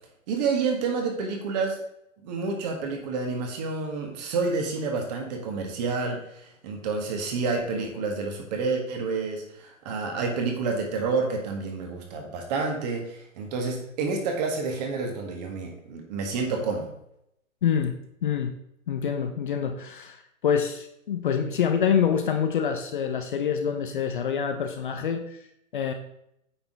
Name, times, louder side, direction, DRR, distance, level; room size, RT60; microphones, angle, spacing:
voice 1, 0.3-1.8 2.2-16.9, right 4 dB, 30° right, 3 dB, 1.7 m, -29 dB
voice 2, 17.6-18.6 18.9-20.2 20.4-25.4 25.7-25.9, left 7 dB, 40° left, 7 dB, 0.6 m, -26 dB
8.9 x 5.8 x 3.9 m, 0.78 s
figure-of-eight pair, 135°, 41 cm